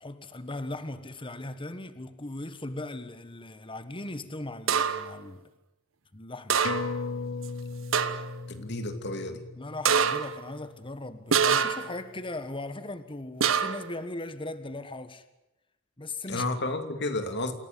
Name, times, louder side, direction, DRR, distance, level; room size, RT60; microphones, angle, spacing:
voice 1, 0.0-5.5 6.1-6.6 9.6-15.2 16.0-16.5, left 2 dB, 25° left, 1.5 m, -38 dB
sound 1, 4.7-5.2 6.5-7.1 7.4-7.5 7.9-8.4 9.8-10.4 11.3-12.0 13.4-13.9, right 7 dB, 85° right, 1.3 m, -25 dB
sound 2, 6.6-11.6 11.9-12.0, left 4 dB, 75° left, 1.2 m, -38 dB
voice 2, 8.5-9.4 16.3-17.5, left 2 dB, 60° left, 2.8 m, -31 dB
28.0 x 17.0 x 9.3 m
head